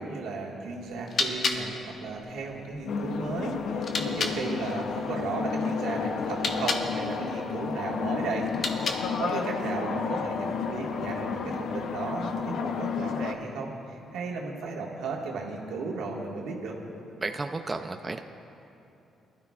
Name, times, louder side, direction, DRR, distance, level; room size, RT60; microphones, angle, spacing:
voice 1, 0.0-8.5 8.8-16.8, right 3 dB, 85° right, -1 dB, 1.6 m, -35 dB
sound 1, 0.8-4.4 6.2-6.9 8.4-9.3, left 3 dB, 55° left, 1.0 m, -33 dB
sound 2, 2.9-13.3, left 5 dB, 70° left, 0.6 m, -31 dB
voice 2, 17.2-18.2, right 3 dB, 25° right, 6 dB, 0.4 m, -33 dB
20.5 x 12.5 x 2.4 m, 2.9 s
cardioid pair, 90°, 0 cm